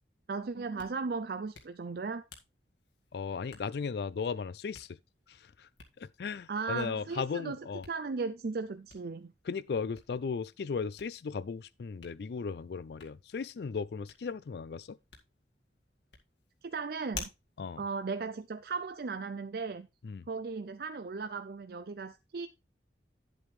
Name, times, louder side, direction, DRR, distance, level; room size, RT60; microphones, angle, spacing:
voice 1, 0.3-2.2 6.5-9.3 16.6-17.3 17.8-19.9 20.3-22.5, right 4 dB, 60° right, 0.5 m, -36 dB
Hands, 0.5-19.1, left 5 dB, 85° left, 2.0 m, -54 dB
voice 2, 3.1-4.9 5.3-5.7 6.0-7.8 9.5-15.0 17.6-17.8 20.0-20.2, left 5 dB, 65° left, 0.4 m, -36 dB
10.5 x 7.8 x 3.2 m
head